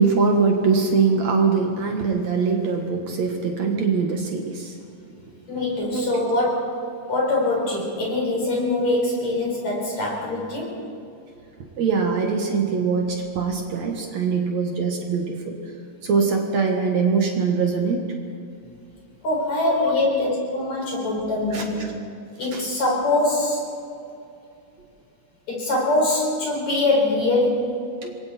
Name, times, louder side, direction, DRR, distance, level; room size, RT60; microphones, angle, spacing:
voice 1, 0.0-4.7 5.9-6.2 11.8-15.6 16.0-18.1 19.6-19.9 21.5-21.6 22.5-22.6 28.0-28.1, right 5 dB, 65° right, 2 dB, 2.8 m, -22 dB
voice 2, 5.5-6.8 7.1-10.8 19.2-21.9 22.4-23.6 25.5-27.7, left 2 dB, 60° left, -2 dB, 5.8 m, -23 dB
28.0 x 22.0 x 4.4 m, 2.5 s
omnidirectional pair, 3.6 m